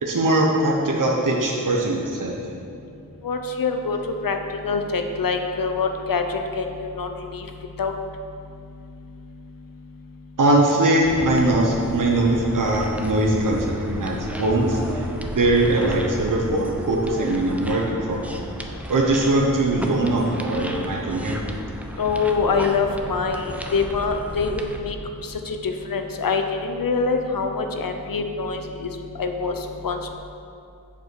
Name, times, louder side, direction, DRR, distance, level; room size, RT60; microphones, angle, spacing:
voice 1, 0.0-2.4 10.4-15.1 15.3-18.5 18.9-21.4, right 2 dB, 60° right, -2 dB, 1.0 m, -21 dB
voice 2, 3.2-7.5 7.8-7.9 22.0-25.0 25.2-30.1, left 4 dB, 70° left, 5 dB, 0.8 m, -25 dB
sound 1, 11.0-24.8, equal, 5° right, 0.8 m, -33 dB
7.4 x 6.8 x 4.6 m, 2.5 s
cardioid pair, 45°, 35 cm